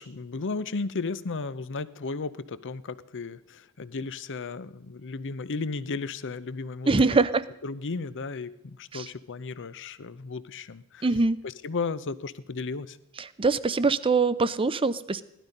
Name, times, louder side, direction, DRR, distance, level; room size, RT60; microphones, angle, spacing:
voice 1, 0.0-7.2 7.6-11.1 11.4-13.0, left 4 dB, 55° left, 15 dB, 0.7 m, -34 dB
voice 2, 6.9-7.4 8.9-9.1 11.0-11.4 13.4-15.2, right 3 dB, 25° right, 15 dB, 0.5 m, -23 dB
16.5 x 12.0 x 5.2 m, 0.84 s
head